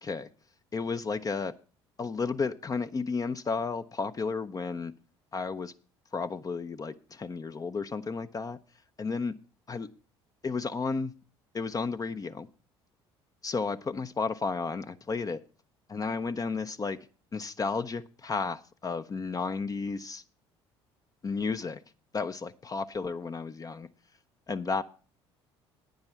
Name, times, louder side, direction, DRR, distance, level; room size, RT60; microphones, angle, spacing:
voice 1, 0.7-1.5 2.0-4.9 5.3-5.7 6.1-8.6 9.0-9.3 9.7-9.9 10.4-11.1 11.5-12.5 13.4-15.4 15.9-17.0 17.3-20.2 21.2-21.8 22.1-23.9 24.5-24.8, left 4 dB, 25° left, 10 dB, 0.6 m, -32 dB
10.5 x 9.7 x 4.4 m, 0.37 s
figure-of-eight pair, 55°, 14 cm